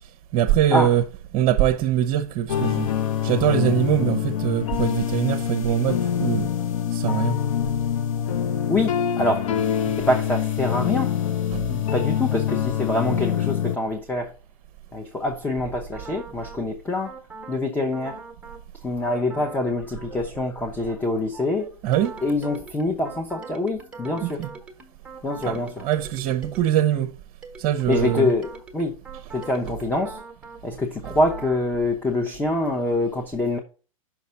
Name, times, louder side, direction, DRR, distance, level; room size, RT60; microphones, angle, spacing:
voice 1, 0.3-1.0 1.3-2.9 3.2-6.5 6.9-7.4 11.5-11.6 21.8-22.1 24.2-24.5 25.5-27.1 27.6-28.3 30.6-30.8, right 11 dB, 40° right, 0.7 m, -22 dB
sound 1, 2.5-13.8, left 9 dB, 65° left, 0.8 m, -25 dB
voice 2, 8.7-9.5 10.0-11.1 11.7-14.3 14.9-17.1 17.5-18.2 18.8-21.7 22.2-24.4 25.2-25.9 27.9-28.9 29.3-30.2 30.6-33.6, left 2 dB, 10° left, 0.8 m, -25 dB
sound 2, 15.9-16.6 17.0-17.6 17.9-18.6 19.0-19.6 20.0-27.0 27.4-30.6 31.0-31.6, right 4 dB, 5° right, 1.2 m, -42 dB
6.0 x 4.0 x 5.6 m
hypercardioid pair, 125°, 18 cm